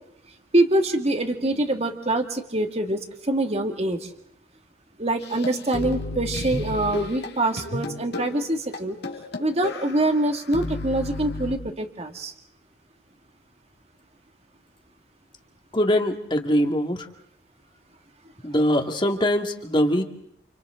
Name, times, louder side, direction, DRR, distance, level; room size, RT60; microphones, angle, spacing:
voice 1, 0.5-4.1 5.0-9.0 9.4-12.3, right 1 dB, 35° right, 5 dB, 2.3 m, -24 dB
sound 1, 5.2-11.6, left 2 dB, 65° left, 2.4 m, -33 dB
voice 2, 15.7-17.1 18.4-20.0, equal, 25° left, 5 dB, 2.2 m, -22 dB
30.0 x 29.0 x 3.9 m, 0.73 s
head